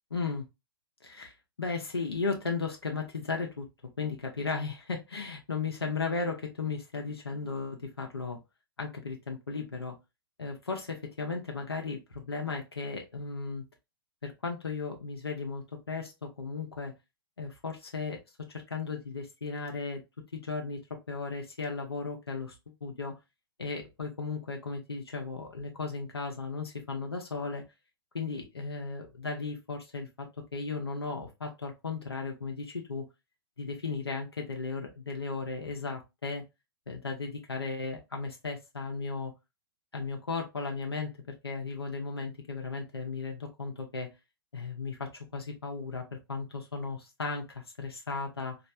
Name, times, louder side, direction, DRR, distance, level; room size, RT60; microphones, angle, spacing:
voice 1, 0.1-0.4 1.0-1.3 1.6-3.6 4.0-8.4 8.8-9.9 10.4-13.6 14.2-16.9 17.4-18.2 18.7-20.0 20.3-23.1 23.6-27.6 28.1-33.1 33.6-36.4 36.9-39.3 39.9-44.1 44.5-48.6, left 4 dB, 85° left, 1 dB, 0.8 m, -35 dB
3.1 x 2.5 x 2.6 m, 0.24 s
figure-of-eight pair, 110°, 13 cm